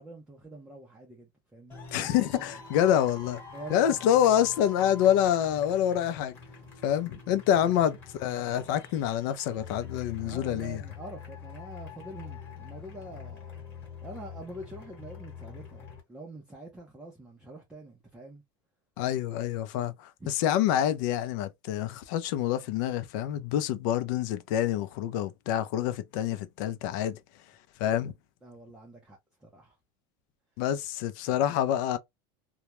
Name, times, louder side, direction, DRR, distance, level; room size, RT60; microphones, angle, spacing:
voice 1, 0.0-2.5 3.5-3.8 4.1-4.2 7.6-7.7 10.2-13.4 14.0-18.4 20.2-20.3 28.4-29.7 31.3-31.4, right 1 dB, 5° right, 0.5 m, -45 dB
sound 1, 1.7-16.0, left 6 dB, 15° left, 1.1 m, -45 dB
voice 2, 1.9-3.4 3.7-6.4 6.8-10.8 19.0-27.2 27.8-28.1 30.6-32.0, left 10 dB, 60° left, 0.4 m, -27 dB
2.2 x 2.0 x 2.9 m
supercardioid pair, 160°, 12 cm